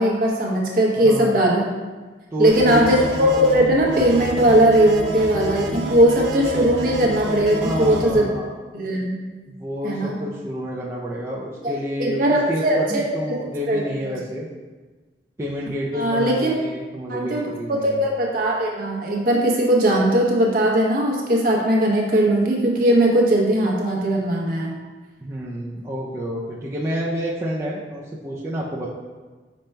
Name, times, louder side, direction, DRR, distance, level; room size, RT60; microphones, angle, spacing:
voice 1, 0.0-1.6 2.4-8.3 8.7-9.2 9.8-10.1 11.6-11.7 12.0-13.4 13.7-14.2 15.9-16.5 17.1-24.7, right 1 dB, 50° right, -2 dB, 0.8 m, -19 dB
voice 2, 1.0-1.4 2.3-2.9 7.6-8.5 9.6-12.2 12.5-14.5 15.4-18.1 25.2-28.9, equal, 15° right, -6 dB, 0.4 m, -29 dB
sound 1, 2.5-8.1, right 1 dB, 80° right, 0.6 m, -29 dB
5.2 x 2.2 x 4.3 m, 1.3 s
head